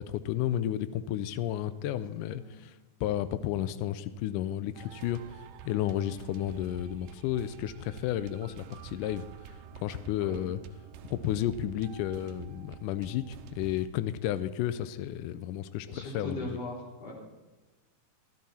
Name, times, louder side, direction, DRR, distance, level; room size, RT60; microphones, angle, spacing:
voice 1, 0.0-10.6 11.1-16.6, left 12 dB, 85° left, 14 dB, 1.8 m, -32 dB
sound 1, 4.7-13.9, right 8 dB, 80° right, 2.3 m, -48 dB
voice 2, 15.9-17.1, left 2 dB, 45° left, -2 dB, 4.2 m, -39 dB
15.0 x 13.5 x 4.2 m, 1.2 s
omnidirectional pair, 4.3 m